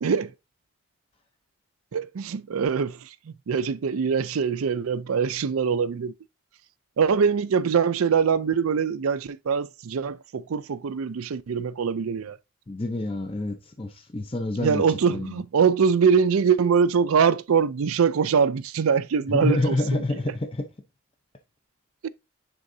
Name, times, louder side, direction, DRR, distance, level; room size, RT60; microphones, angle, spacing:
voice 1, 0.0-0.3 1.9-6.1 7.0-12.4 14.6-20.0 22.0-22.1, right 6 dB, 80° right, 0.4 m, -23 dB
voice 2, 12.7-14.8 15.1-15.3 19.3-20.7, left 2 dB, 25° left, 0.6 m, -27 dB
9.7 x 3.8 x 2.7 m
head